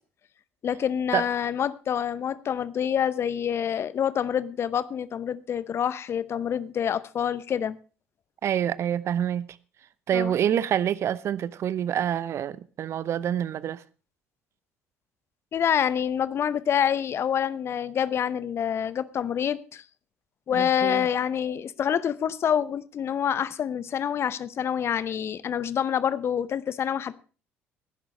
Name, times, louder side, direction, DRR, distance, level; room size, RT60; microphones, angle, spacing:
voice 1, 0.6-7.8 10.1-10.3 15.5-19.8 20.5-27.2, left 8 dB, 40° left, 0.8 m, -27 dB
voice 2, 8.4-9.5 10.1-13.8 20.5-21.1, right 10 dB, 45° right, 0.7 m, -27 dB
17.5 x 11.0 x 3.2 m
figure-of-eight pair, 50°, 6 cm